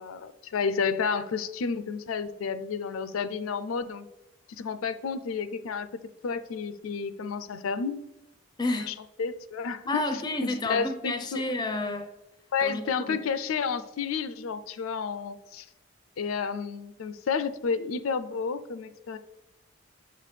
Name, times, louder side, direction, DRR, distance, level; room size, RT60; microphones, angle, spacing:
voice 1, 0.0-4.1 4.5-5.9 6.2-8.0 8.9-10.0 10.7-11.4 12.5-15.7 16.2-19.2, left 5 dB, 90° left, 13 dB, 0.4 m, -31 dB
voice 2, 8.6-8.9 9.9-12.1 12.6-13.2, left 2 dB, 20° left, 6 dB, 0.4 m, -30 dB
6.7 x 5.7 x 3.3 m, 0.95 s
head